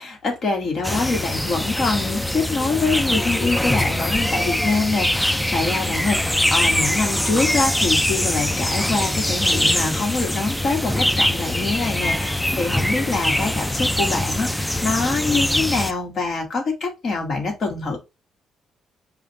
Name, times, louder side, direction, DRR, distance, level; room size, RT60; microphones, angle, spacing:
voice 1, 0.0-18.0, left 3 dB, 55° left, 1.8 m, -25 dB
sound 1, 0.8-15.9, left 1 dB, 5° left, 0.4 m, -22 dB
4.9 x 2.5 x 4.3 m
cardioid pair, 90°, 0 cm